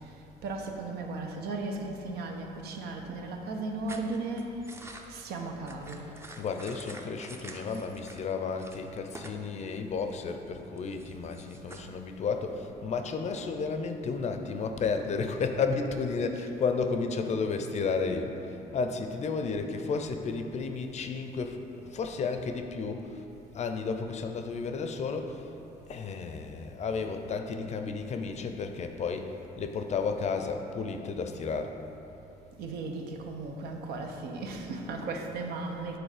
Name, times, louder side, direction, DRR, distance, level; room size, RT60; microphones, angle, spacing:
voice 1, 0.4-4.6 5.1-6.1 32.6-36.0, right 3 dB, 70° right, 3 dB, 0.8 m, -36 dB
sound 1, 3.9-8.3 8.6-9.4 9.7-11.8, right 2 dB, 15° right, 0.5 m, -48 dB
voice 2, 6.4-21.6 21.8-23.2 23.5-25.4 25.9-31.7, left 4 dB, 40° left, 6 dB, 0.5 m, -32 dB
7.8 x 4.0 x 4.9 m, 2.9 s
cardioid pair, 110°, 17 cm